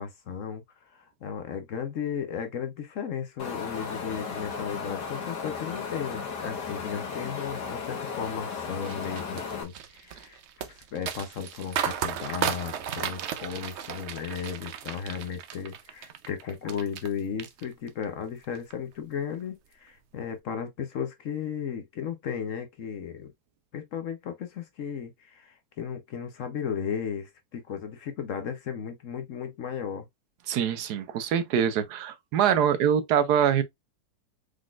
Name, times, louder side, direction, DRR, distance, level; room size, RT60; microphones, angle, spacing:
voice 1, 0.0-10.4 10.7-23.3 23.7-30.1, left 7 dB, 60° left, 1.0 m, -35 dB
Wind, 3.4-9.6, left 5 dB, 90° left, 1.7 m, -35 dB
sound 1, 8.8-17.1 17.4-18.0 18.4-18.7, right 8 dB, 60° right, 0.7 m, -34 dB
voice 2, 30.5-33.6, right 8 dB, 75° right, 1.2 m, -24 dB
4.9 x 3.9 x 2.3 m
omnidirectional pair, 1.8 m